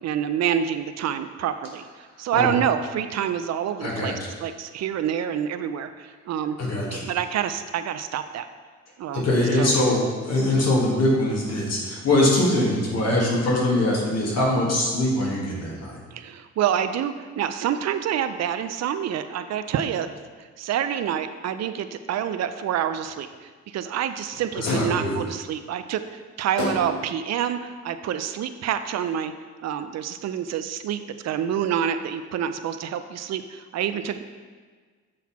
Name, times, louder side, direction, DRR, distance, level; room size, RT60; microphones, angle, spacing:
voice 1, 0.0-6.6 6.9-8.5 9.0-9.3 9.5-9.7 16.1-20.1 20.4-29.3 29.6-34.2, right 9 dB, 60° right, 10 dB, 0.4 m, -27 dB
voice 2, 3.8-4.1 6.6-7.1 9.1-16.0 24.6-25.2, left 1 dB, 60° left, -4 dB, 2.0 m, -22 dB
sound 1, 24.7-25.2 26.6-27.2, left 2 dB, 75° left, 1.1 m, -29 dB
7.6 x 4.0 x 4.2 m, 1.5 s
cardioid pair, 90°, 30 cm